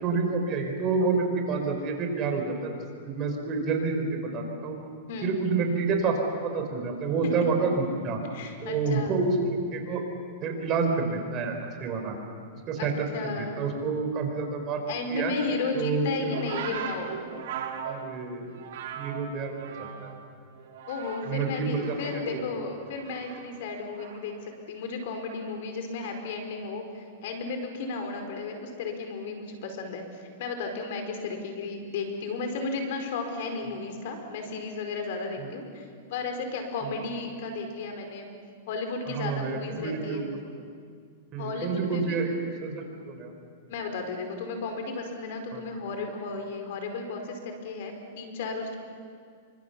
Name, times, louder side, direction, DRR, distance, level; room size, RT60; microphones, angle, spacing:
voice 1, 0.0-2.7 3.0-4.7 5.2-8.2 8.6-10.0 10.4-11.5 11.8-12.1 12.7-14.8 15.1-15.3 15.7-16.3 17.8-18.4 19.0-20.1 21.3-22.4 35.4-35.5 36.8-36.9 39.0-40.5 41.3-43.3 45.5-45.6, right 4 dB, 30° right, 3 dB, 4.7 m, -28 dB
voice 2, 8.3-9.1 12.8-13.6 14.9-17.2 20.9-30.0 30.4-38.3 38.7-40.3 41.4-42.2 43.7-48.8, left 3 dB, 60° left, 5 dB, 5.0 m, -34 dB
sound 1, 16.3-20.2 20.5-21.4 21.7-24.4 25.3-25.6, right 7 dB, 65° right, 4.3 m, -39 dB
28.0 x 25.0 x 7.2 m, 2.1 s
supercardioid pair, 150°, 0 cm